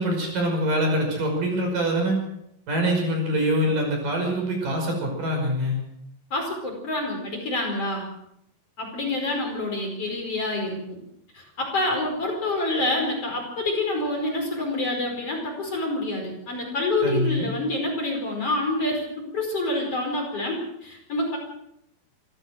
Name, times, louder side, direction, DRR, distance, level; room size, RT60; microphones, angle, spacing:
voice 1, 0.0-2.2 2.7-5.8 17.0-17.5, equal, 55° right, 2 dB, 7.2 m, -24 dB
voice 2, 6.3-8.1 8.8-11.0 11.3-21.4, left 2 dB, 35° left, 1 dB, 5.6 m, -27 dB
27.5 x 14.5 x 6.5 m, 0.78 s
omnidirectional pair, 4.7 m